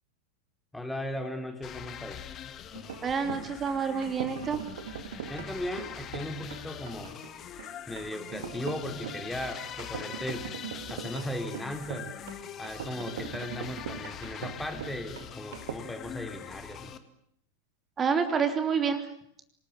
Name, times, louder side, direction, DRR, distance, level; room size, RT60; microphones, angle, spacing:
voice 1, 0.7-2.2 5.3-7.2 7.9-10.5 10.9-12.1 12.6-17.0, left 1 dB, 5° left, 6 dB, 3.1 m, -37 dB
sound 1, 1.6-17.0, left 9 dB, 30° left, 2.1 m, -43 dB
sound 2, 2.7-15.7, right 9 dB, 60° right, 2.4 m, -41 dB
voice 2, 3.0-4.6 18.0-19.0, right 6 dB, 20° right, 8 dB, 3.1 m, -28 dB
27.0 x 19.5 x 10.0 m, 0.71 s
figure-of-eight pair, 90°, 0 cm